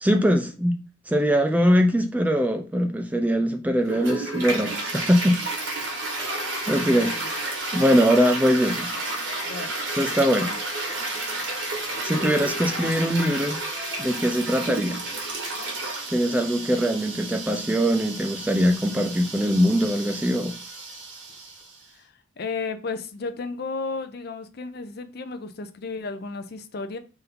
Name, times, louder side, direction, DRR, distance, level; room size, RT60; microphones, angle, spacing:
voice 1, 0.0-0.7 1.1-5.4 6.7-7.4 7.7-8.9 10.0-10.5 12.0-13.6 14.0-15.0 16.1-20.5, equal, 5° right, 0.3 m, -22 dB
Toilet flush, 3.8-21.8, right 2 dB, 65° right, 1.3 m, -32 dB
Drip, 6.2-11.4 11.9-17.2, left 4 dB, 75° left, 1.2 m, -45 dB
voice 2, 6.9-7.3 9.4-9.7 21.9-27.0, left 4 dB, 50° left, 0.5 m, -33 dB
3.9 x 2.6 x 4.2 m
head